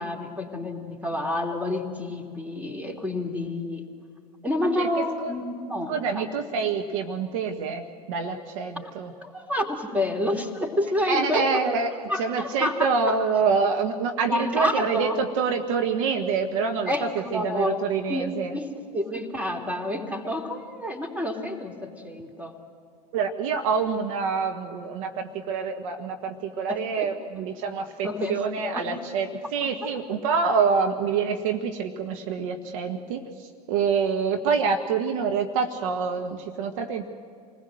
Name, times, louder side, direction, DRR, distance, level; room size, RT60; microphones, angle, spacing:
voice 1, 0.0-3.8 4.4-6.3 8.8-8.9 9.2-11.5 12.1-13.1 14.3-15.2 16.9-17.8 18.1-22.5 26.7-27.1 28.0-28.3 28.6-28.8 29.6-29.9, left 1 dB, 5° right, 3 dB, 3.2 m, -29 dB
voice 2, 4.8-5.3 5.9-9.1 11.1-11.9 12.2-18.6 23.1-37.1, right 5 dB, 55° right, 5 dB, 1.6 m, -26 dB
28.5 x 20.0 x 7.8 m, 2.3 s
figure-of-eight pair, 85°, 21 cm